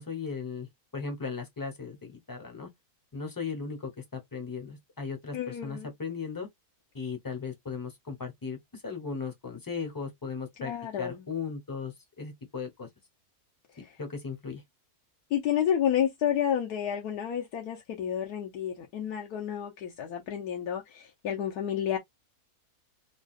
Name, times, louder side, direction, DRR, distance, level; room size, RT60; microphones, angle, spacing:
voice 1, 0.0-2.7 3.1-6.5 6.9-10.7 11.0-12.9 13.8-14.6, left 5 dB, 15° left, 0.8 m, -37 dB
voice 2, 5.3-5.9 10.6-11.2 13.8-13.9 15.3-22.0, left 9 dB, 80° left, 1.3 m, -30 dB
3.9 x 2.4 x 2.4 m
omnidirectional pair, 1.7 m